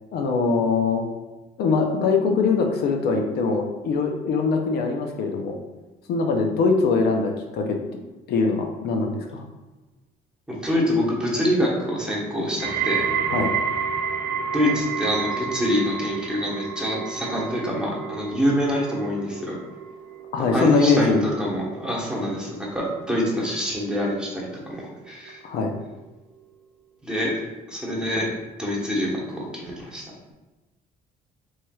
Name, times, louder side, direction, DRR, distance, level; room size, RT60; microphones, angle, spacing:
voice 1, 0.1-1.0 1.6-5.6 6.1-8.0 8.3-9.5 13.3-13.5 20.3-21.2 25.4-25.7, left 4 dB, 70° left, 3 dB, 0.5 m, -22 dB
voice 2, 10.5-13.0 14.5-19.5 20.5-24.8 25.0-25.4 27.0-27.3 27.7-28.3 28.6-30.0, equal, 5° right, -4 dB, 1.0 m, -25 dB
sound 1, 12.6-23.7 24.0-24.5 25.3-25.4, right 7 dB, 65° right, 0.5 m, -30 dB
4.4 x 3.1 x 2.3 m, 1.1 s
cardioid pair, 110°, 17 cm